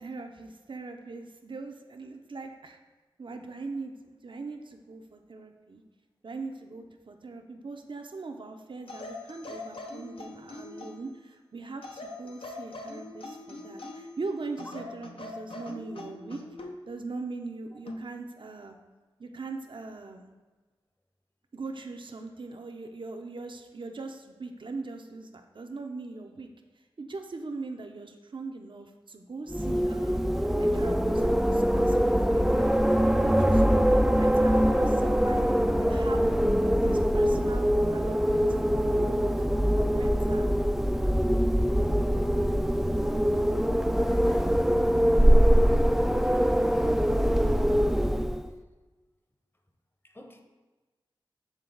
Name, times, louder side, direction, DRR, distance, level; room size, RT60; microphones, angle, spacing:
voice 1, 0.0-2.8 3.2-5.8 6.2-16.4 16.9-18.8 19.2-20.3 21.5-26.5 27.0-35.4 35.8-36.3 36.8-39.3 39.7-40.5, right 3 dB, 60° right, 4 dB, 0.6 m, -40 dB
sound 1, 8.9-11.1 11.8-14.2 14.6-16.8 17.9-18.1, left 2 dB, 70° left, 0.7 m, -42 dB
Wind, 29.5-48.5, equal, 5° right, 0.3 m, -23 dB
voice 2, 44.1-44.6 50.0-50.4, equal, 25° left, 4 dB, 0.8 m, -47 dB
7.4 x 3.8 x 3.8 m, 1.2 s
cardioid pair, 50°, 9 cm